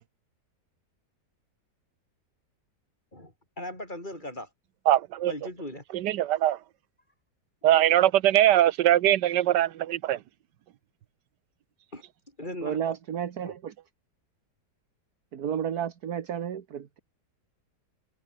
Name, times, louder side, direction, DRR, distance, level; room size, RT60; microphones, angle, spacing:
voice 1, 3.1-4.5 5.3-5.8 11.9-12.0 12.4-12.9 13.4-13.5, left 1 dB, 25° left, 8.2 m, -38 dB
voice 2, 4.9-5.3 5.9-6.6 7.6-10.2, right 13 dB, 85° right, 1.4 m, -22 dB
voice 3, 12.6-13.7 15.3-17.0, right 9 dB, 65° right, 1.8 m, -32 dB
omnidirectional pair, 1.8 m